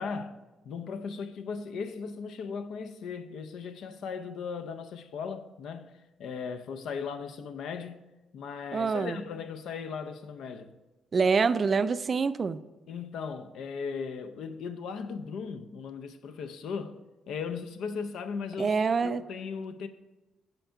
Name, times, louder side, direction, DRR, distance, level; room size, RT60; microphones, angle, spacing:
voice 1, 0.0-8.1 8.3-10.8 12.9-19.9, left 5 dB, 75° left, 0.5 m, -37 dB
voice 2, 8.7-9.2 11.1-12.6 18.6-19.2, right 5 dB, 40° right, 0.3 m, -26 dB
7.9 x 4.5 x 5.7 m
cardioid pair, 90°, 0 cm